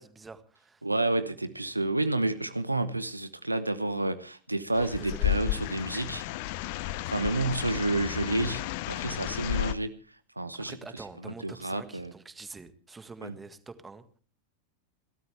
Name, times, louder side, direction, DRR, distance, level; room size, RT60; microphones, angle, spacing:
voice 1, 0.0-0.8 4.8-6.0 10.6-14.2, right 4 dB, 15° right, 1.8 m, -46 dB
voice 2, 0.8-6.2 7.1-10.0 10.4-10.8 11.2-12.1 13.2-13.3, right 2 dB, 85° right, 1.0 m, -30 dB
sound 1, 4.7-9.7, left 14 dB, 50° left, 0.7 m, -32 dB
29.0 x 13.0 x 3.4 m
figure-of-eight pair, 90°, 0 cm